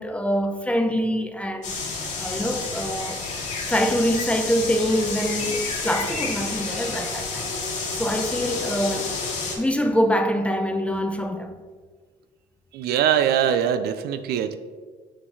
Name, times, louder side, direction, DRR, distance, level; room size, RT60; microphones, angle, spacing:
voice 1, 0.0-1.8 2.2-3.2 3.7-7.5 8.0-9.1 9.6-11.5, equal, 5° left, 0.5 m, -24 dB
sound 1, 1.6-9.6, left 4 dB, 45° left, 1.5 m, -30 dB
voice 2, 12.7-14.6, right 9 dB, 70° right, 0.4 m, -22 dB
6.3 x 3.8 x 4.6 m
cardioid pair, 110°, 17 cm